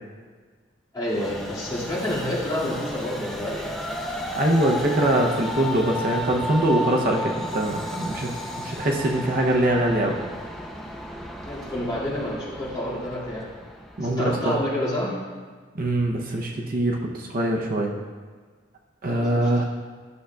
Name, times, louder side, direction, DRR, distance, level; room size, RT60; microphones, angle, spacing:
voice 1, 0.9-3.8 11.4-13.5 14.0-15.2 19.1-19.5, left 1 dB, 20° left, -8 dB, 2.1 m, -29 dB
Train, 1.0-14.5, equal, ahead, 0.5 m, -34 dB
voice 2, 4.4-8.3 8.6-10.2 14.0-14.6 15.8-17.9 19.0-19.6, right 1 dB, 50° right, 0 dB, 0.7 m, -23 dB
11.0 x 6.4 x 2.3 m, 1.5 s
head